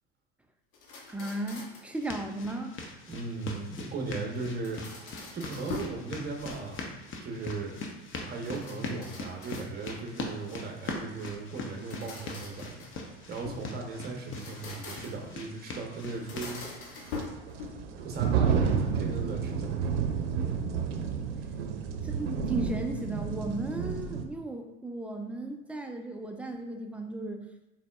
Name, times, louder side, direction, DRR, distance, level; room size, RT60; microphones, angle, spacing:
sound 1, 0.7-2.0 4.4-6.0 6.4-7.0 8.4-10.1 11.7-13.7 14.2-15.3 16.1-18.0, left 4 dB, 70° left, 1.1 m, -43 dB
voice 1, 1.1-2.7 22.0-27.4, right 2 dB, 5° right, 3 dB, 0.3 m, -35 dB
sound 2, 1.9-16.5, left 3 dB, 35° left, 0.8 m, -41 dB
voice 2, 3.1-5.1 5.3-6.9 7.2-7.8 8.2-16.6 18.0-19.8, right 3 dB, 25° right, 1 dB, 0.9 m, -37 dB
sound 3, 11.2-11.3 13.8-13.9 14.4-14.5 16.0-24.2, right 6 dB, 80° right, 0.6 m, -31 dB
4.0 x 3.9 x 2.3 m, 0.99 s
hypercardioid pair, 80°, 35 cm